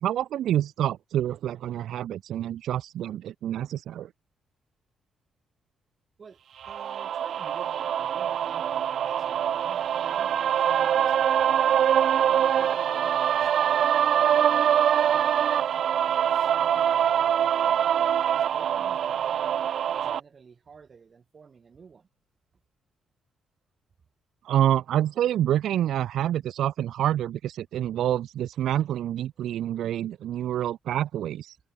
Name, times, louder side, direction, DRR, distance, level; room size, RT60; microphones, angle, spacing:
voice 1, 0.0-4.1 24.4-31.6, right 11 dB, 75° right, 1.1 m, -27 dB
voice 2, 6.2-11.8 12.3-15.4 16.1-17.9 18.3-19.4 19.9-22.1, right 5 dB, 35° right, 6.8 m, -52 dB
sound 1, 6.6-20.2, right 9 dB, 60° right, 0.5 m, -24 dB
cardioid pair, 135°, 0 cm